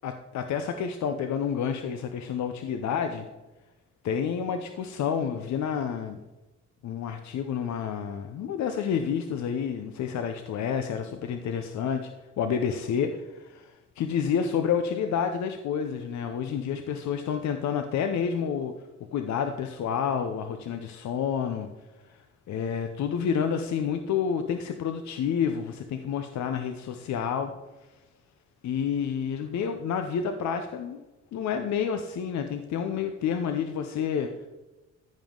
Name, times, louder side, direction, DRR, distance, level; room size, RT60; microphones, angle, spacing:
voice 1, 0.0-3.3 4.0-6.2 6.8-12.1 12.4-18.7 19.1-21.7 22.0-27.5 28.6-31.0 31.3-34.3, left 7 dB, 65° left, 7 dB, 0.7 m, -29 dB
14.0 x 5.4 x 3.8 m, 1.1 s
cardioid pair, 90°, 30 cm